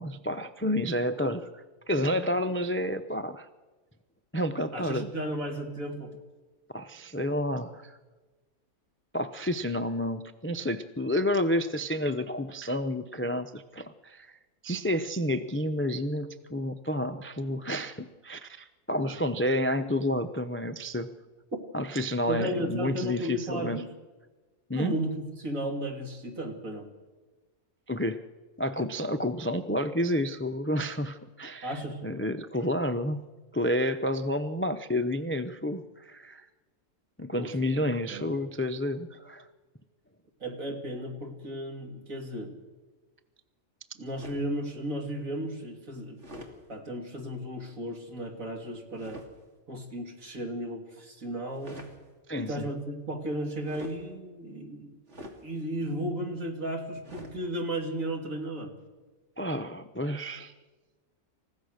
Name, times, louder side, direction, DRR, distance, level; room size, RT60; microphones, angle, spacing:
voice 1, 0.0-3.5 4.3-5.1 6.7-7.9 9.1-14.3 14.6-21.1 21.7-23.8 24.7-24.9 27.9-28.2 28.6-33.2 33.5-36.5 37.2-39.5 52.3-52.6 59.4-60.5, left 1 dB, 15° left, 10 dB, 0.4 m, -30 dB
voice 2, 4.7-6.1 19.0-19.2 22.3-23.9 24.7-26.9 31.6-32.0 37.3-38.3 40.4-42.5 43.9-46.2 46.7-49.2 49.7-51.8 52.4-55.0 55.4-58.7, right 1 dB, 70° right, 3 dB, 3.4 m, -34 dB
sound 1, 44.1-44.6 46.2-46.6 49.0-49.3 51.5-52.0 53.6-54.0 55.1-55.4 57.0-57.4, equal, 55° right, 2.9 m, -44 dB
29.0 x 15.5 x 6.5 m, 1.3 s
omnidirectional pair, 1.5 m